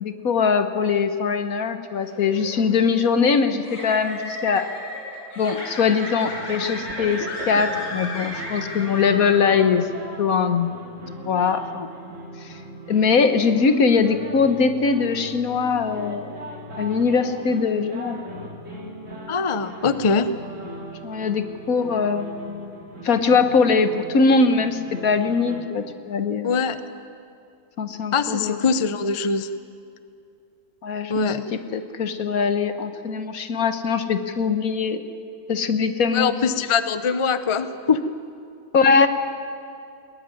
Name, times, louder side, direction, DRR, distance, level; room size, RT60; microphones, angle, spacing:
voice 1, 0.0-4.7 5.4-9.9 10.2-10.7 11.3-12.1 12.4-12.5 12.9-16.4 16.8-18.2 21.0-22.7 23.0-26.6 27.8-28.6 30.8-35.0 35.5-36.4 38.7-39.1, left 5 dB, 70° left, 9 dB, 1.7 m, -21 dB
sound 1, 2.0-9.6, left 1 dB, 90° left, 4.7 m, -35 dB
sound 2, 6.3-25.6, right 1 dB, 55° right, 2.9 m, -39 dB
voice 2, 19.3-20.3 26.4-26.8 28.1-29.5 31.1-31.4 36.1-38.0, left 5 dB, 30° left, 12 dB, 0.7 m, -22 dB
21.5 x 18.5 x 9.8 m, 2.5 s
omnidirectional pair, 1.6 m